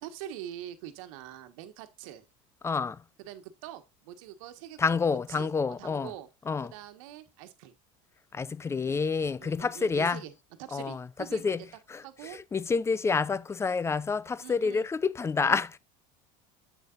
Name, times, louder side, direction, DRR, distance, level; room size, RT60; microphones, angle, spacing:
voice 1, 0.0-2.2 3.2-5.0 5.4-5.5 5.8-6.3 6.6-7.7 9.4-10.3 10.6-11.6 12.0-12.4 14.4-14.9 15.4-15.8, right 11 dB, 75° right, 1.3 m, -44 dB
voice 2, 2.6-3.0 4.8-6.1 6.5-6.7 8.3-10.2 10.7-11.1 11.3-11.6 11.9-15.7, left 5 dB, 15° left, 0.4 m, -28 dB
8.1 x 6.8 x 2.5 m
supercardioid pair, 105°, 17 cm